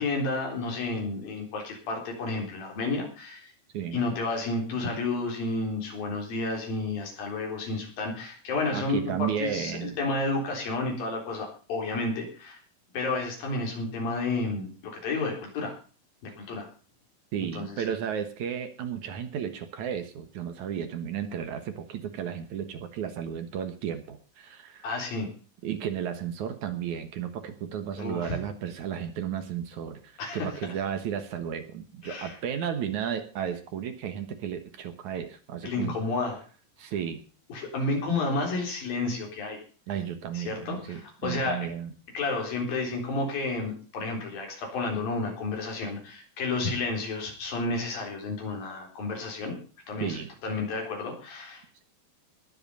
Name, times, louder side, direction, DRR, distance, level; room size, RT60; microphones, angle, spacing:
voice 1, 0.0-3.5 3.9-12.6 12.9-15.8 16.2-16.7 17.6-17.9 24.8-25.3 28.0-28.4 30.2-30.5 32.0-32.3 35.6-36.4 37.5-39.6 40.3-41.7 42.1-49.6 49.9-51.8, left 3 dB, 80° left, 1 dB, 5.7 m, -31 dB
voice 2, 8.7-10.0 17.3-24.9 25.6-35.9 36.8-37.2 39.9-41.9 50.0-50.3, right 8 dB, 65° right, 8 dB, 2.5 m, -33 dB
20.0 x 8.0 x 5.5 m, 0.39 s
omnidirectional pair, 4.0 m